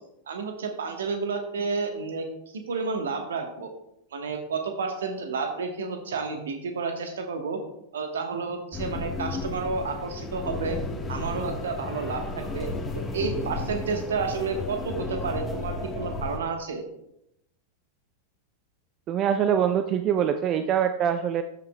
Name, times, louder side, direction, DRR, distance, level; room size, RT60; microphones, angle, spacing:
voice 1, 0.3-2.3 2.5-3.7 4.1-7.6 7.9-10.8 11.1-12.7 12.9-16.8, right 4 dB, 65° right, 5 dB, 1.2 m, -31 dB
sound 1, 8.7-16.4, left 2 dB, 15° left, 1.2 m, -33 dB
voice 2, 19.1-21.4, right 9 dB, 35° right, 10 dB, 0.4 m, -24 dB
13.0 x 5.7 x 2.2 m, 0.80 s
figure-of-eight pair, 90°, 0 cm